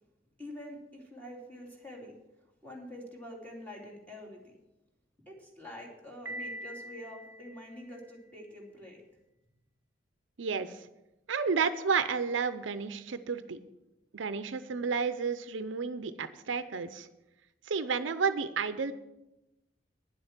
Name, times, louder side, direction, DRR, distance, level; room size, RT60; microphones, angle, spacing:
voice 1, 0.4-2.1 2.6-4.6 5.3-9.0, left 1 dB, 10° left, -2 dB, 2.7 m, -46 dB
Piano, 6.3-8.2, right 1 dB, 10° right, 0.7 m, -43 dB
voice 2, 10.4-10.9 11.3-13.6 14.1-17.1 17.7-18.9, right 5 dB, 70° right, 12 dB, 0.6 m, -31 dB
10.0 x 7.8 x 7.3 m, 0.94 s
head